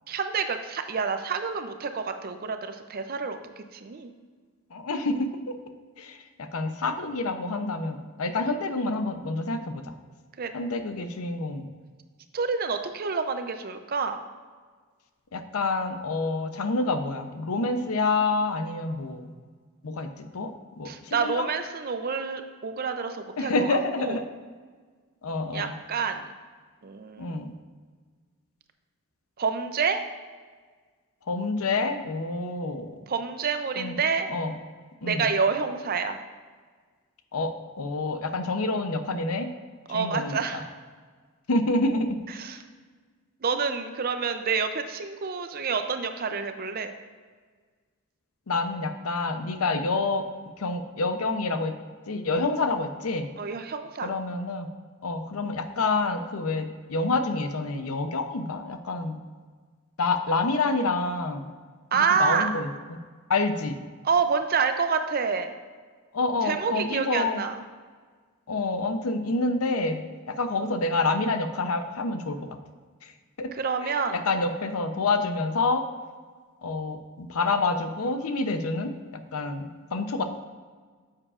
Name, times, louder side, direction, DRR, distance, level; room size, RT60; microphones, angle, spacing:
voice 1, 0.1-4.1 10.4-10.5 12.3-14.2 20.8-24.2 25.5-26.3 26.8-27.5 29.4-30.0 33.1-34.3 35.0-36.2 39.9-40.7 42.4-42.6 43.4-46.9 53.4-54.1 61.9-62.5 64.0-65.5 66.4-67.6 73.5-74.2, right 5 dB, 45° right, 8 dB, 0.5 m, -28 dB
voice 2, 4.7-5.5 6.0-9.9 10.5-11.7 15.3-19.3 19.8-21.5 23.4-24.2 25.2-25.7 27.2-27.5 31.3-33.0 33.8-34.0 34.3-34.5 35.0-35.3 37.3-39.5 39.9-40.6 41.5-42.2 48.5-50.2 50.6-51.7 52.1-53.3 54.0-54.7 55.0-59.2 60.0-61.5 61.9-63.0 63.3-63.8 66.1-67.4 68.5-72.4 73.0-73.1 73.4-73.5 73.8-74.0 74.2-75.8 76.6-80.2, left 3 dB, 85° left, 8 dB, 0.7 m, -28 dB
9.8 x 7.4 x 2.5 m, 1.5 s
head